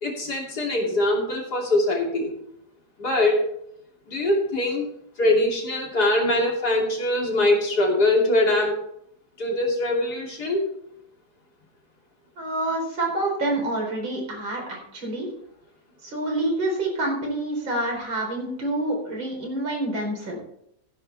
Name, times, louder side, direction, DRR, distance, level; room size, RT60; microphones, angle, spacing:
voice 1, 0.0-2.3 3.0-3.5 4.1-4.9 5.2-8.8 9.4-10.7, left 1 dB, 55° left, -1 dB, 3.5 m, -22 dB
voice 2, 12.4-15.3 16.0-20.4, right 1 dB, 85° right, 0 dB, 4.9 m, -27 dB
15.5 x 10.5 x 3.4 m, 0.72 s
omnidirectional pair, 2.1 m